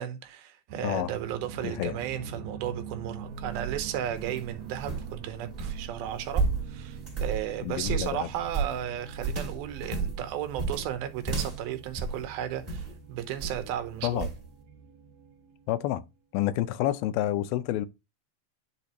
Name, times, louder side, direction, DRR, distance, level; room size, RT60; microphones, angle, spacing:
voice 1, 0.0-14.3, right 10 dB, 80° right, 2.7 m, -34 dB
sound 1, 0.7-16.1, right 6 dB, 60° right, 2.7 m, -44 dB
voice 2, 1.6-2.0 7.6-8.3 14.0-14.3 15.7-16.0 16.3-17.9, left 13 dB, 85° left, 2.5 m, -29 dB
sound 2, 3.2-12.9 13.4-13.7 14.2-14.4, right 4 dB, 15° right, 2.6 m, -33 dB
10.0 x 4.1 x 2.9 m
omnidirectional pair, 4.3 m